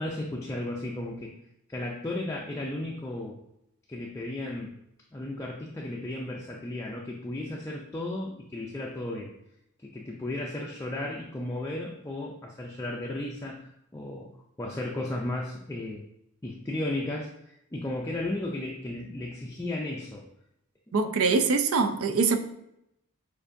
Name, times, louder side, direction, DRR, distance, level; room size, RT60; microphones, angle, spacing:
voice 1, 0.0-1.4 1.7-3.4 3.9-4.7 5.1-9.3 9.8-16.0 16.4-20.2, left 1 dB, 15° left, -2 dB, 0.4 m, -34 dB
voice 2, 20.9-22.4, right 4 dB, 65° right, 8 dB, 0.4 m, -23 dB
6.7 x 2.5 x 2.6 m, 0.80 s
head